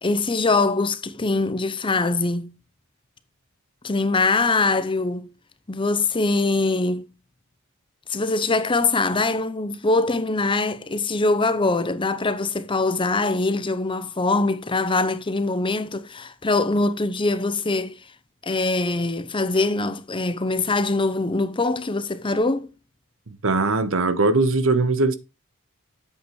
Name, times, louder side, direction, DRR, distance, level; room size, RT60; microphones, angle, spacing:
voice 1, 0.0-2.5 3.8-5.3 5.7-7.1 8.1-18.0 18.4-22.7, left 3 dB, 20° left, 0.7 m, -23 dB
voice 2, 23.3-25.2, right 3 dB, 65° right, 1.1 m, -20 dB
8.5 x 8.5 x 3.2 m
head